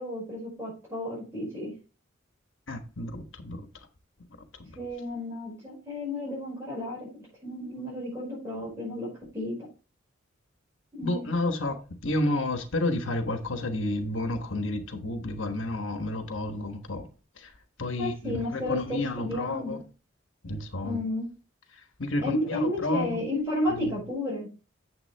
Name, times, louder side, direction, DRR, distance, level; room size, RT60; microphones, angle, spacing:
voice 1, 0.0-1.7 4.7-9.6 10.9-11.3 18.0-19.8 20.8-21.2 22.2-24.5, left 1 dB, 15° right, 5.5 m, -32 dB
voice 2, 2.7-3.7 4.6-4.8 11.0-17.1 17.4-17.5 17.8-19.8 20.4-21.0 22.0-23.2 23.7-23.9, left 2 dB, 70° left, 1.3 m, -31 dB
9.4 x 7.4 x 3.4 m
head